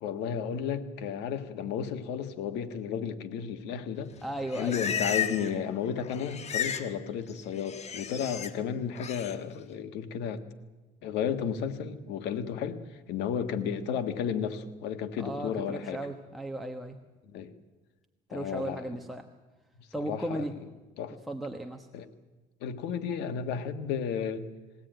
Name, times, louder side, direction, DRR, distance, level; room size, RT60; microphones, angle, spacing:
voice 1, 0.0-4.1 4.5-10.4 11.0-16.0 17.3-17.5 18.3-19.0 19.8-20.5 21.0-21.2 21.9-22.0 22.6-24.5, left 7 dB, 85° left, 8 dB, 1.7 m, -33 dB
Livestock farm animals working animals, 4.2-5.6 5.9-6.9 7.2-8.5 9.0-9.4, left 7 dB, 40° left, 1.4 m, -34 dB
voice 2, 4.2-4.8 15.2-17.0 18.3-19.3 19.9-20.5 21.3-21.9, right 1 dB, ahead, 3 dB, 1.3 m, -36 dB
22.0 x 16.5 x 9.2 m, 1.2 s
cardioid pair, 110°, 17 cm